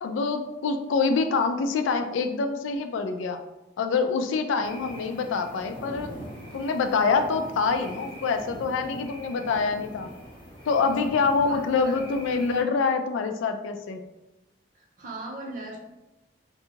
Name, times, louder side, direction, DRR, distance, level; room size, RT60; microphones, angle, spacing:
voice 1, 0.0-3.4 3.8-6.1 6.5-10.1 10.7-14.0, left 4 dB, 85° left, 7 dB, 0.3 m, -25 dB
sound 1, 4.6-12.6, equal, 25° left, 0.8 m, -43 dB
voice 2, 11.5-11.9 12.3-12.4 14.7-15.8, right 2 dB, 45° right, -2 dB, 0.6 m, -39 dB
2.6 x 2.3 x 2.8 m, 0.99 s
head